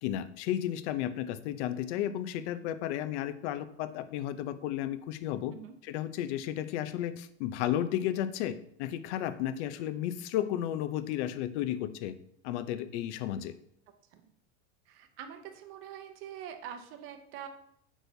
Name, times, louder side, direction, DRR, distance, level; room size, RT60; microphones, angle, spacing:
voice 1, 0.0-5.5 5.8-12.1 12.4-13.5, left 11 dB, 60° left, 13 dB, 0.6 m, -33 dB
voice 2, 14.9-17.5, right 9 dB, 35° right, 6 dB, 0.7 m, -44 dB
8.0 x 6.2 x 2.7 m, 0.71 s
supercardioid pair, 160°, 39 cm